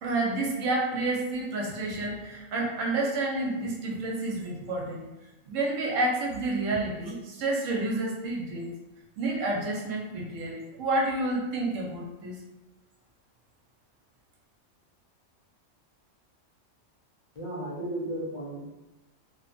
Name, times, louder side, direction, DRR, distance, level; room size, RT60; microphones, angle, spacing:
voice 1, 0.0-5.0 5.5-8.7 9.2-12.4, right 2 dB, 80° right, -1 dB, 1.0 m, -29 dB
voice 2, 17.3-18.7, right 1 dB, 55° left, -7 dB, 0.6 m, -34 dB
2.7 x 2.2 x 2.5 m, 1.1 s
omnidirectional pair, 1.3 m